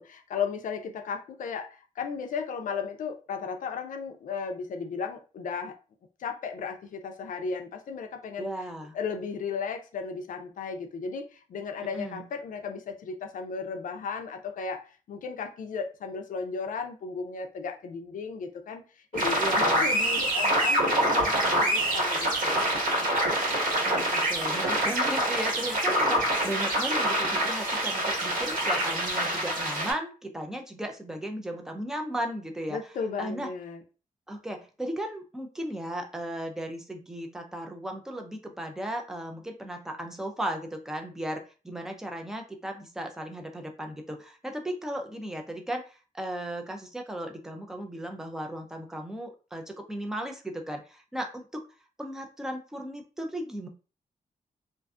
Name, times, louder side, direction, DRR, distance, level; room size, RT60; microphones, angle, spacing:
voice 1, 0.0-5.8 6.2-8.5 8.9-22.6 32.7-33.8, left 5 dB, 70° left, 5 dB, 0.4 m, -35 dB
voice 2, 8.4-9.0 11.9-12.2 19.4-19.8 23.8-32.8 33.2-33.5 34.3-51.6 52.0-53.7, right 1 dB, 5° right, 3 dB, 0.3 m, -36 dB
sound 1, 19.1-29.9, right 1 dB, 70° right, 1.4 m, -26 dB
2.5 x 2.2 x 2.4 m, 0.34 s
wide cardioid pair, 165°, 14 cm